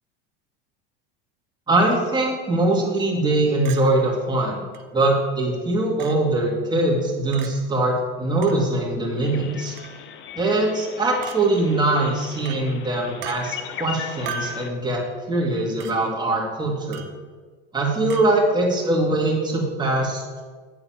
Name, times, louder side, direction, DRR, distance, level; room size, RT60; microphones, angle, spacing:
voice 1, 1.7-4.6 4.9-9.8 10.4-17.0 17.7-20.4, right 2 dB, 15° right, -2 dB, 2.0 m, -22 dB
Chink clink, 3.7-3.8 4.7-4.8 6.0-6.2 7.3-7.5 8.4-8.6 9.8-10.0 11.2-11.4 12.5-12.6 13.2-13.4 14.3-14.6 15.8-15.9 16.9-17.2 18.1-18.3, right 6 dB, 55° right, 0.9 m, -35 dB
sound 1, 9.2-14.7, left 8 dB, 40° left, 0.6 m, -38 dB
9.0 x 3.9 x 5.7 m, 1.5 s
supercardioid pair, 105°, 30 cm